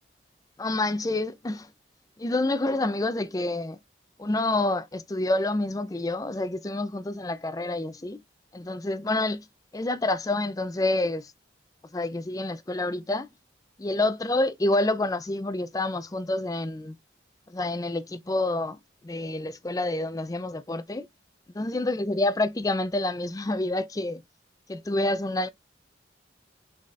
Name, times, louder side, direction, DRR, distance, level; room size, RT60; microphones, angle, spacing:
voice 1, 0.6-1.7 2.2-3.8 4.2-8.2 8.5-9.4 9.7-11.3 11.9-13.3 13.8-17.0 17.5-18.8 19.0-21.1 21.5-24.2 24.7-25.5, left 2 dB, 20° left, 0.4 m, -28 dB
5.1 x 4.2 x 2.4 m
head